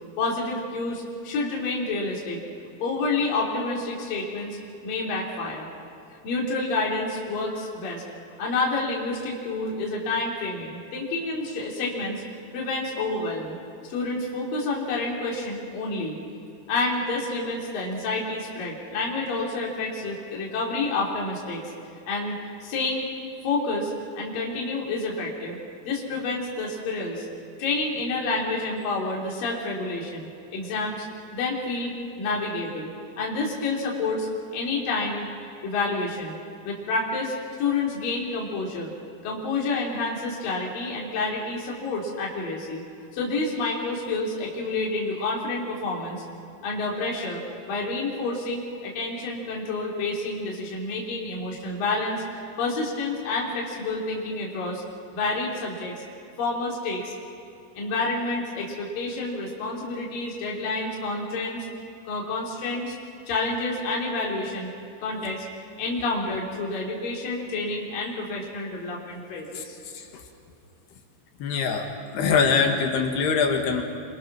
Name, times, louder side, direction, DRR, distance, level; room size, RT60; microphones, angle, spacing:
voice 1, 0.2-2.4 2.8-4.6 4.8-5.7 6.2-8.0 8.4-12.2 12.5-13.6 13.9-16.2 16.7-21.6 22.1-22.4 22.6-23.1 23.4-25.6 25.9-27.3 27.6-31.0 31.3-31.9 32.2-32.9 33.2-34.3 34.5-35.3 35.6-36.4 36.6-38.9 39.2-42.8 43.1-46.2 46.6-47.4 47.7-52.2 52.6-54.8 55.1-55.9 56.4-57.1 57.8-61.7 62.1-62.9 63.3-64.7 65.0-65.4 65.8-69.8, left 3 dB, 55° left, -3 dB, 4.8 m, -29 dB
voice 2, 71.4-73.8, left 5 dB, 70° left, 3 dB, 3.9 m, -23 dB
28.0 x 25.5 x 6.2 m, 2.7 s
omnidirectional pair, 5.0 m